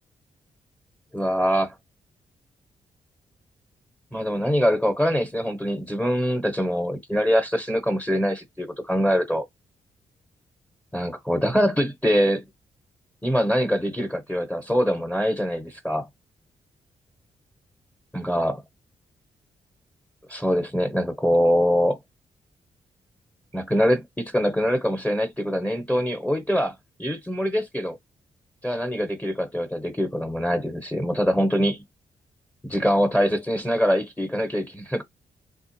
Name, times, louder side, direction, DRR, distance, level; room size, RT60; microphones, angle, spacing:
voice 1, 1.1-1.8 4.1-9.4 10.9-12.4 13.2-16.1 18.1-18.6 20.3-22.0 23.5-28.0 28.6-31.8 32.6-35.0, equal, 5° left, 0.8 m, -23 dB
3.5 x 2.8 x 2.9 m
cardioid pair, 110°, 12 cm